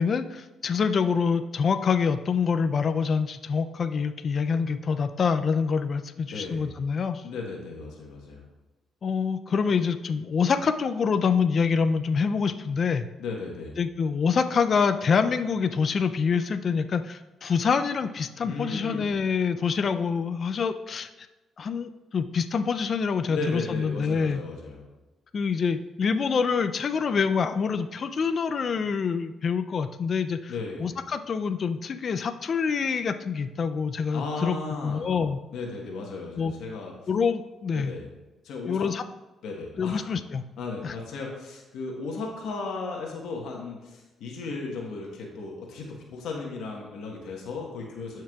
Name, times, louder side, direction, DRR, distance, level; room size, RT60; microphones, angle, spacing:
voice 1, 0.0-7.2 9.0-13.1 13.8-21.1 21.6-24.4 25.3-30.5 30.8-34.6 34.8-35.4 36.4-36.5 37.1-37.9 38.7-39.0 39.8-40.4 40.8-40.9, left 5 dB, 50° left, 9 dB, 0.3 m, -26 dB
voice 2, 6.3-6.7 7.2-8.4 13.2-13.7 18.4-19.2 23.3-24.9 30.5-30.9 34.1-35.1 35.5-36.9 37.7-38.1 38.4-38.9 39.4-40.1 40.6-48.2, left 3 dB, 80° left, -1 dB, 1.2 m, -35 dB
12.0 x 4.6 x 2.3 m, 1.1 s
cardioid pair, 90°, 0 cm